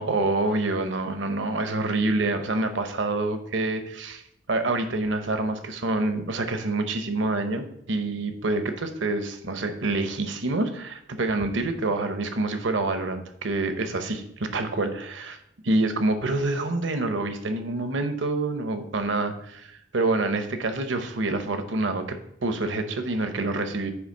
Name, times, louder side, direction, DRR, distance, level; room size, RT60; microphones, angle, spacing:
voice 1, 0.0-4.2 4.5-15.4 15.6-22.2 22.4-23.9, right 2 dB, 65° right, 8 dB, 0.9 m, -27 dB
9.7 x 3.3 x 6.4 m, 0.79 s
head